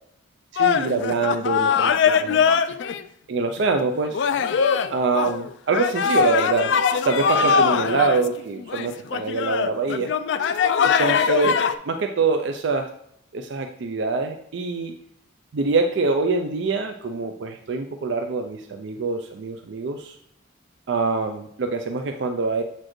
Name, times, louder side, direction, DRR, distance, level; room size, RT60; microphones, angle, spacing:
voice 1, 0.5-2.5 3.3-4.3 4.9-6.7 7.1-10.1 11.0-11.5 11.8-12.9 13.3-14.9 15.5-20.2 20.9-22.6, right 4 dB, 60° right, 5 dB, 0.4 m, -24 dB
sound 1, 0.6-3.0 3.6-3.7 4.1-11.7, left 6 dB, 60° left, 0.3 m, -21 dB
7.6 x 4.2 x 3.1 m, 0.74 s
head